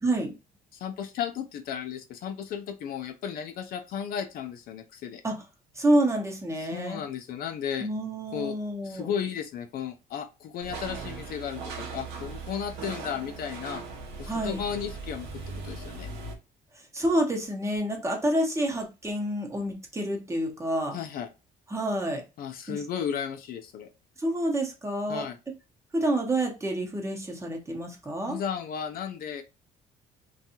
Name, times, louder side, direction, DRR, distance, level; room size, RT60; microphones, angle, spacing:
voice 1, 0.0-0.4 5.2-5.4 5.7-7.0 7.8-9.1 14.3-14.6 16.7-21.0 21.7-22.2 22.7-22.8 24.2-25.3 25.9-28.4, right 1 dB, 15° right, 2 dB, 0.8 m, -28 dB
voice 2, 0.8-5.2 6.7-7.9 8.3-8.5 8.8-13.8 14.2-15.3 15.6-16.1 20.9-21.3 22.4-23.9 25.1-25.3 28.3-29.4, left 8 dB, 60° left, 7 dB, 0.5 m, -34 dB
sound 1, 10.6-16.3, right 4 dB, 90° right, 0.8 m, -39 dB
2.6 x 2.3 x 2.8 m, 0.28 s
cardioid pair, 110°, 17 cm